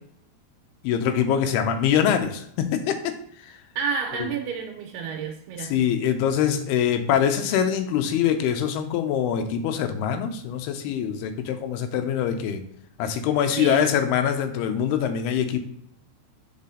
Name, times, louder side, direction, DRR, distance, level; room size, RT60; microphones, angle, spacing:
voice 1, 0.8-3.5 5.7-12.6 13.0-15.6, left 8 dB, 85° left, 2.6 m, -24 dB
voice 2, 3.8-5.9 13.5-13.9, right 6 dB, 85° right, 2.7 m, -30 dB
5.7 x 4.9 x 3.6 m
omnidirectional pair, 4.6 m